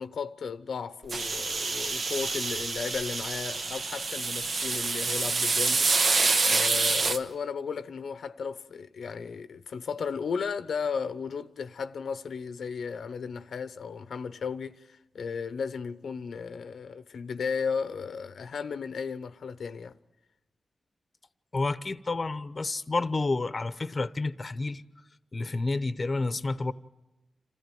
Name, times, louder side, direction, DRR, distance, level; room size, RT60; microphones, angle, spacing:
voice 1, 0.0-20.0, left 6 dB, 80° left, 0.8 m, -35 dB
sound 1, 1.1-7.2, right 3 dB, 60° right, 1.1 m, -27 dB
voice 2, 21.5-24.8 25.3-26.7, left 3 dB, 35° left, 0.8 m, -30 dB
27.5 x 14.5 x 9.3 m
cardioid pair, 85°, 0 cm